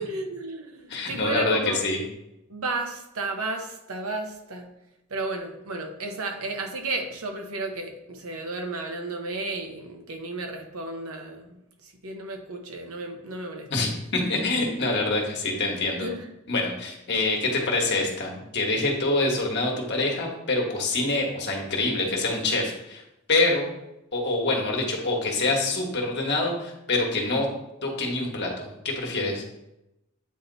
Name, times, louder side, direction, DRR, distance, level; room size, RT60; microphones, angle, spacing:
voice 1, 0.0-1.8 2.5-4.7 5.1-13.7 16.0-16.3, right 3 dB, 85° right, 4 dB, 0.9 m, -33 dB
voice 2, 0.9-2.0 13.7-16.1 16.5-23.0 23.3-23.7 24.1-27.5 27.8-29.4, left 2 dB, 55° left, -1 dB, 1.3 m, -26 dB
8.4 x 2.8 x 4.0 m, 0.90 s
head